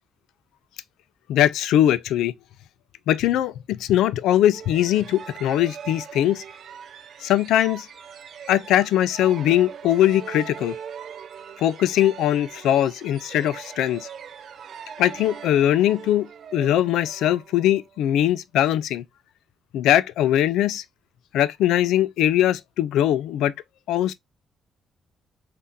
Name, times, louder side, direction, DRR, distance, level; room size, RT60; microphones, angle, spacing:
voice 1, 1.3-2.3 3.1-6.4 7.2-7.9 8.5-10.8 11.6-14.1 15.0-16.3 16.5-19.0 19.7-20.8 21.3-23.5 23.9-24.1, left 12 dB, 85° left, 0.3 m, -21 dB
sound 1, 4.5-18.0, right 7 dB, 60° right, 0.4 m, -41 dB
3.5 x 2.4 x 2.6 m
cardioid pair, 90°, 0 cm